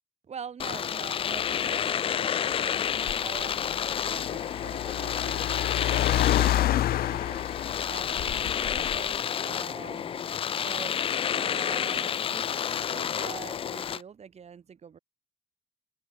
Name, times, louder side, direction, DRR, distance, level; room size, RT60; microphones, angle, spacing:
voice 1, 0.2-7.6 7.9-11.0 11.3-15.0, right 7 dB, 40° right, 6.4 m, -45 dB
Domestic sounds home sounds, 0.6-14.0, left 8 dB, 35° left, 0.4 m, -30 dB
Car, 1.2-9.2, left 13 dB, 60° left, 1.1 m, -30 dB
open air
cardioid pair, 110°, 17 cm